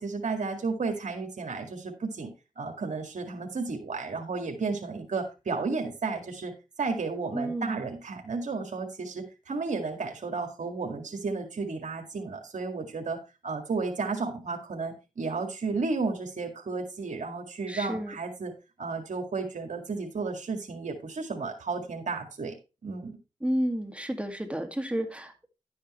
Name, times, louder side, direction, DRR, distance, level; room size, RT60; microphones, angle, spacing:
voice 1, 0.0-22.6 22.8-23.2, right 4 dB, 75° right, 3 dB, 2.0 m, -33 dB
voice 2, 7.3-7.8 17.7-18.2 23.4-25.5, equal, 10° right, 6 dB, 2.0 m, -31 dB
11.0 x 8.6 x 3.1 m, 0.28 s
cardioid pair, 55°, 13 cm